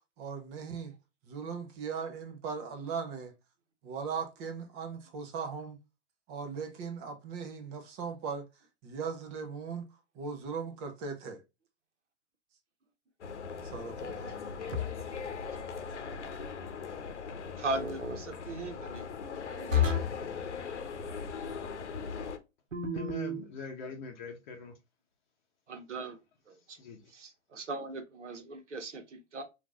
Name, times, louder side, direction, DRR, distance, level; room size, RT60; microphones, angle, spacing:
voice 1, 0.2-0.9 1.3-3.3 3.8-5.8 6.3-8.5 8.8-9.9 10.2-11.4 13.6-14.4, right 5 dB, 15° right, 0.4 m, -38 dB
sound 1, 13.2-22.4, left 5 dB, 65° left, 0.9 m, -40 dB
sound 2, 14.7-15.2 17.7-18.2 19.7-20.3 22.7-23.4, left 5 dB, 90° right, 1.0 m, -31 dB
voice 2, 17.6-19.1 19.5-20.0 25.7-26.2 26.5-26.8 27.1-29.4, right 2 dB, 70° right, 1.1 m, -39 dB
voice 3, 22.9-24.7 26.8-27.1, left 4 dB, 40° left, 0.8 m, -43 dB
4.4 x 2.5 x 2.3 m
figure-of-eight pair, 110°, 37 cm